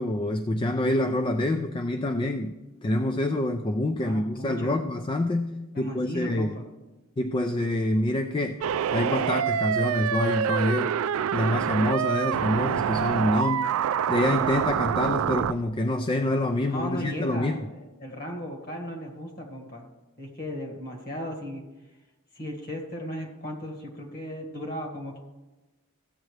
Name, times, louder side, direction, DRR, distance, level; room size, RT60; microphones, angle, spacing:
voice 1, 0.0-5.5 5.8-6.6 7.2-8.7 8.9-11.0 11.3-13.7 14.1-17.7, left 1 dB, 20° left, 7 dB, 0.3 m, -26 dB
voice 2, 4.0-4.8 5.7-6.7 16.7-19.8 20.2-21.6 22.4-25.2, equal, 45° left, 2 dB, 1.7 m, -36 dB
sound 1, 8.6-15.5, right 8 dB, 70° right, 0.3 m, -26 dB
15.0 x 7.7 x 3.3 m, 1.1 s
head